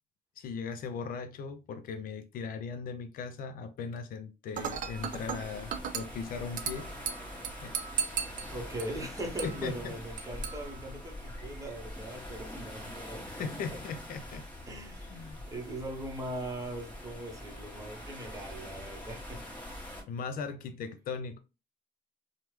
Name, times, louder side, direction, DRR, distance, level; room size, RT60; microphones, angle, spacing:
voice 1, 0.4-6.9 7.6-7.8 9.4-9.9 13.3-14.5 14.9-15.5 20.1-21.4, left 5 dB, 55° left, 0.4 m, -38 dB
sound 1, 4.5-20.0, left 1 dB, 10° left, 1.3 m, -44 dB
Dishes pots and pans / Glass, 4.5-11.5, right 7 dB, 50° right, 0.4 m, -39 dB
voice 2, 8.5-13.5 14.7-19.5, right 1 dB, 20° right, 0.8 m, -40 dB
3.2 x 2.1 x 3.1 m
cardioid pair, 110°, 17 cm